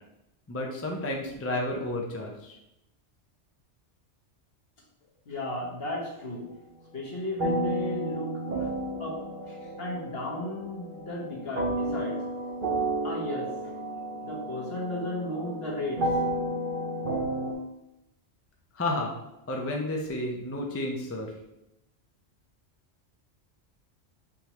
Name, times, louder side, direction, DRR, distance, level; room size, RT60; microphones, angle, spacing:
voice 1, 0.5-2.6 18.7-19.1 19.5-21.3, left 1 dB, 20° left, 0 dB, 0.3 m, -31 dB
voice 2, 5.2-6.5 6.9-8.7 9.0-12.2 13.0-13.6 14.2-16.1, left 1 dB, 55° left, -3 dB, 1.3 m, -35 dB
sound 1, 7.4-17.5, right 1 dB, 50° right, 0.9 m, -32 dB
5.2 x 3.3 x 3.0 m, 0.85 s
omnidirectional pair, 1.2 m